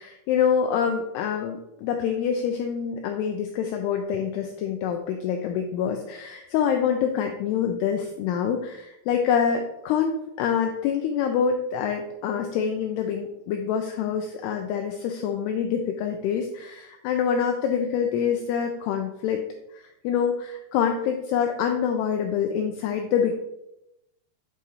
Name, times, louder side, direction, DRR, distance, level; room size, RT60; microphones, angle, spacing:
voice 1, 0.0-19.4 19.7-23.3, left 7 dB, 85° left, 4 dB, 2.3 m, -26 dB
9.3 x 3.6 x 4.2 m, 0.87 s
omnidirectional pair, 5.3 m